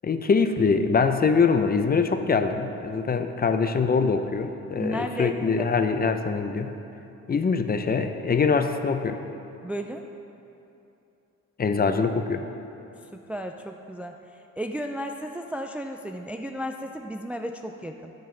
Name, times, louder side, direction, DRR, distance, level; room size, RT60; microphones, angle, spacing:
voice 1, 0.0-6.7 7.3-9.2 11.6-12.4, left 5 dB, 30° left, 8 dB, 0.6 m, -23 dB
voice 2, 4.8-5.7 9.6-10.0 13.1-14.2 14.6-18.1, equal, 5° right, 4 dB, 0.4 m, -34 dB
17.0 x 6.5 x 3.3 m, 2.9 s
cardioid pair, 90°, 30 cm